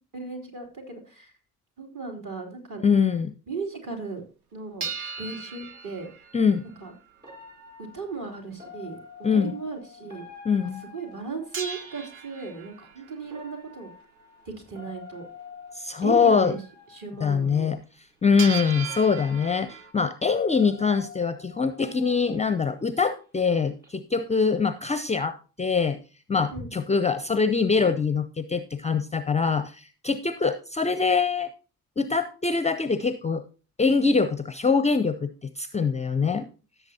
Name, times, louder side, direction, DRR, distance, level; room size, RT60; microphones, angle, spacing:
voice 1, 0.1-1.3 1.8-2.9 3.5-4.2 4.5-4.9 5.2-6.1 6.6-6.9 7.9-10.3 10.5-13.9 14.4-15.3 16.0-16.6 16.9-17.7 26.5-26.7 36.2-36.3, right 4 dB, 45° right, 1 dB, 3.2 m, -36 dB
voice 2, 2.8-3.3 6.3-6.6 9.2-9.5 10.4-10.8 15.7-16.5 17.2-17.8 18.2-26.0 26.3-31.5 32.0-33.4 33.8-35.3 35.6-36.5, left 5 dB, 15° left, 12 dB, 0.5 m, -23 dB
sound 1, 4.8-7.2 11.5-13.4 18.4-19.9, right 6 dB, 85° right, 0.7 m, -37 dB
sound 2, 5.7-5.9 7.2-12.0 13.2-17.5 18.3-18.4 18.8-23.2 23.6-23.9, left 5 dB, 20° right, 3.8 m, -47 dB
16.5 x 7.0 x 2.8 m, 0.34 s
figure-of-eight pair, 45°, 43 cm